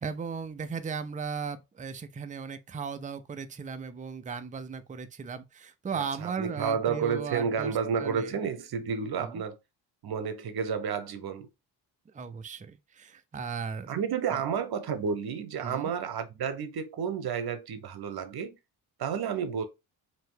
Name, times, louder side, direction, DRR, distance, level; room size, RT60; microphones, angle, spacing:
voice 1, 0.0-8.4 9.2-9.4 12.1-13.9 14.3-14.4 15.6-15.9, right 5 dB, 15° right, 0.4 m, -37 dB
voice 2, 5.9-9.6 10.0-11.5 13.9-18.6 19.0-19.7, right 6 dB, 50° right, 0.8 m, -31 dB
2.7 x 2.6 x 3.6 m
hypercardioid pair, 50°, 48 cm